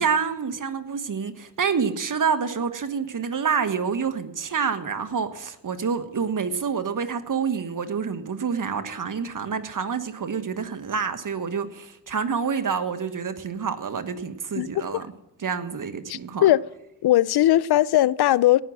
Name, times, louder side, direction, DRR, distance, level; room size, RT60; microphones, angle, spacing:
voice 1, 0.0-15.1 15.4-16.5, right 6 dB, 50° right, 1.5 m, -27 dB
voice 2, 16.1-16.6 17.0-18.6, left 14 dB, 65° left, 0.6 m, -19 dB
17.5 x 6.4 x 7.4 m
cardioid pair, 55°, 42 cm